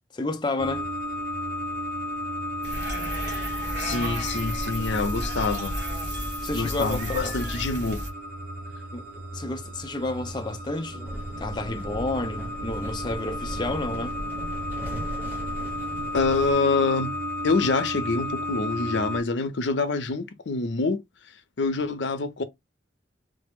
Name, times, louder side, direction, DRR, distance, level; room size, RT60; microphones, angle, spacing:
voice 1, 0.1-0.9 6.4-7.5 8.9-14.2, left 2 dB, 25° left, 0.4 m, -31 dB
sound 1, 0.6-19.2, left 1 dB, 45° right, 1.2 m, -33 dB
sound 2, 2.6-8.1, right 1 dB, 75° right, 1.2 m, -33 dB
voice 2, 3.8-5.8 6.5-8.0 16.1-17.1 17.4-21.0 21.6-22.4, left 3 dB, 75° left, 0.6 m, -26 dB
sound 3, 11.0-16.5, equal, 10° right, 1.0 m, -37 dB
3.2 x 2.0 x 3.5 m
head